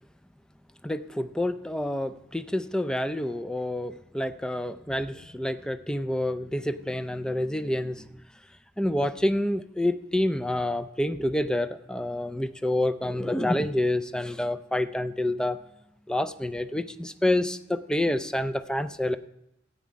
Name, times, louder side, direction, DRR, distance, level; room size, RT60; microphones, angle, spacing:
voice 1, 0.8-8.1 8.8-15.6 16.1-19.2, left 1 dB, 5° left, 11 dB, 0.4 m, -28 dB
13.5 x 8.5 x 5.1 m, 0.84 s
head